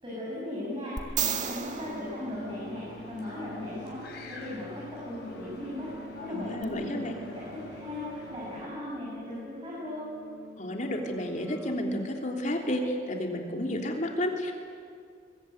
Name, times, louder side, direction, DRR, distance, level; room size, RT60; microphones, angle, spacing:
voice 1, 0.0-10.1, left 1 dB, 25° right, -6 dB, 6.9 m, -38 dB
sound 1, 1.0-3.2 6.6-6.7, right 8 dB, 40° right, 2.1 m, -34 dB
sound 2, 1.3-8.7, left 2 dB, 60° left, 6.7 m, -47 dB
sound 3, 1.7-11.7, equal, 5° right, 1.8 m, -48 dB
voice 2, 6.3-7.1 10.6-14.5, left 1 dB, 40° left, 2 dB, 3.3 m, -31 dB
23.0 x 22.0 x 9.4 m, 2.3 s
head